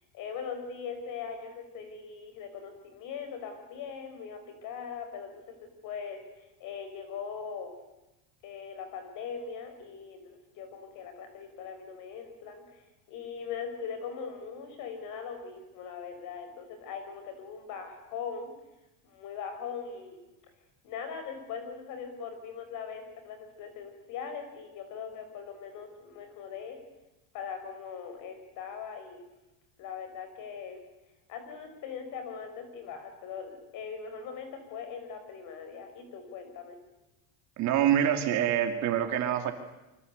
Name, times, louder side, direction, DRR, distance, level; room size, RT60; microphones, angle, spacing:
voice 1, 0.1-5.4 5.8-7.7 8.4-12.8 13.1-18.5 19.0-20.2 20.8-26.8 27.3-29.3 29.8-30.8 31.3-36.8, left 6 dB, 45° left, 7 dB, 5.9 m, -40 dB
voice 2, 37.6-39.5, right 10 dB, 40° right, 5 dB, 2.8 m, -26 dB
27.0 x 25.0 x 8.3 m, 0.95 s
cardioid pair, 175°, 45 cm